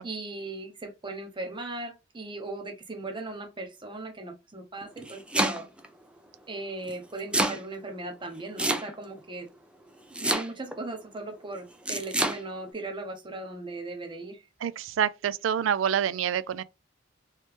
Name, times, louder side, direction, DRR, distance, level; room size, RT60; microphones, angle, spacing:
voice 1, 0.0-5.7 6.5-9.5 10.2-14.4, right 2 dB, 25° right, 0.8 m, -38 dB
Domestic sounds home sounds, 4.8-5.9 6.9-7.6 8.6-9.2 10.1-10.8 11.9-12.4, right 1 dB, 5° right, 0.4 m, -27 dB
voice 2, 14.6-16.6, right 8 dB, 85° right, 0.3 m, -27 dB
3.2 x 2.9 x 3.2 m
head